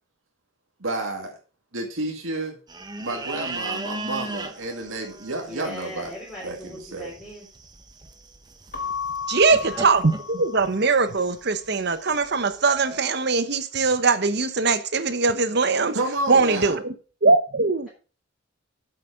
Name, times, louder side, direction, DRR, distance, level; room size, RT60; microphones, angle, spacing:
voice 1, 0.8-1.4 1.7-2.6 3.0-6.1 6.4-7.1 15.9-16.8, right 2 dB, 80° right, 2.2 m, -30 dB
sound 1, 2.7-13.0, right 2 dB, 20° right, 1.0 m, -38 dB
voice 2, 5.4-7.5 9.6-9.9, equal, 5° left, 3.7 m, -39 dB
Keyboard (musical) / Bell, 8.7-11.2, left 6 dB, 45° left, 1.4 m, -34 dB
voice 3, 9.3-16.0 16.3-16.9 17.2-17.9, right 4 dB, 55° right, 0.9 m, -21 dB
8.3 x 7.9 x 5.1 m
head